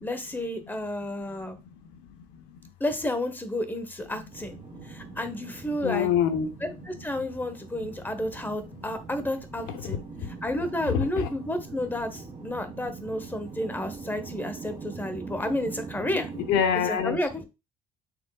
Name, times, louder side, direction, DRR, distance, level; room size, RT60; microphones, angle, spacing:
voice 1, 0.0-1.6 2.8-4.6 4.8-6.1 6.6-10.0 10.3-16.3 16.8-17.4, left 1 dB, 10° left, 0.9 m, -31 dB
sound 1, 4.3-16.6, right 5 dB, 30° right, 0.6 m, -43 dB
voice 2, 5.8-6.5 7.8-7.9 9.7-10.0 10.8-11.3 16.3-17.2, left 8 dB, 90° left, 0.9 m, -26 dB
5.9 x 3.6 x 2.3 m
cardioid pair, 110°, 17 cm